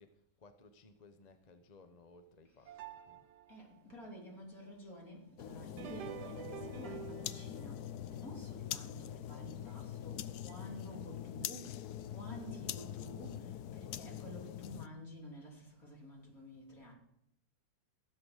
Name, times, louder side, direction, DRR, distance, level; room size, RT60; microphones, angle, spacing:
voice 1, 0.0-3.2, left 3 dB, 35° left, 8 dB, 0.7 m, -60 dB
sound 1, 2.7-3.8 5.6-10.0 10.5-10.6 11.4-11.5 12.3-12.4, right 10 dB, 75° right, 1.4 m, -50 dB
voice 2, 3.5-7.8 8.1-11.7 12.1-16.9, equal, 50° left, -1 dB, 3.7 m, -51 dB
sound 2, 5.4-14.9, left 11 dB, 70° left, 1.1 m, -44 dB
16.0 x 7.9 x 6.5 m, 0.79 s
omnidirectional pair, 1.9 m